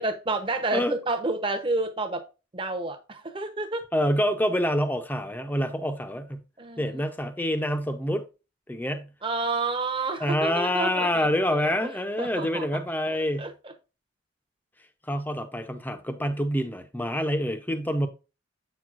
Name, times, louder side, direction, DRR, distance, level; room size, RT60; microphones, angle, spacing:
voice 1, 0.0-2.2 2.5-3.8 6.6-7.0 9.2-11.6 12.2-12.7 13.1-13.7, right 3 dB, 25° right, 0.8 m, -30 dB
voice 2, 3.9-6.4 6.8-8.3 8.7-9.1 10.2-13.5 15.1-18.1, equal, 10° left, 0.6 m, -27 dB
7.9 x 6.1 x 2.5 m
head